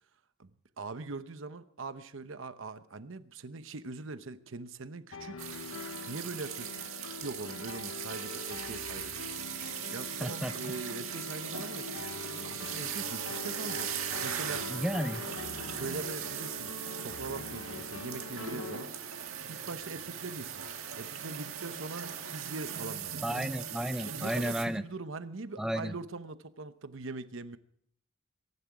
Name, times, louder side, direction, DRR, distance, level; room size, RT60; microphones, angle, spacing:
voice 1, 0.4-5.5 6.1-6.8 7.2-9.2 9.9-11.9 12.4-14.7 15.6-18.9 19.5-20.6 20.9-23.2 24.0-27.6, right 3 dB, 70° right, 12 dB, 0.9 m, -42 dB
sound 1, 5.1-18.8, left 4 dB, 75° left, 1.0 m, -43 dB
sound 2, 5.4-24.6, right 8 dB, 85° right, 1.8 m, -39 dB
voice 2, 10.2-10.7 14.7-15.2 23.2-24.8 25.6-25.9, equal, 5° right, 12 dB, 0.5 m, -33 dB
22.5 x 11.5 x 4.9 m, 0.66 s
head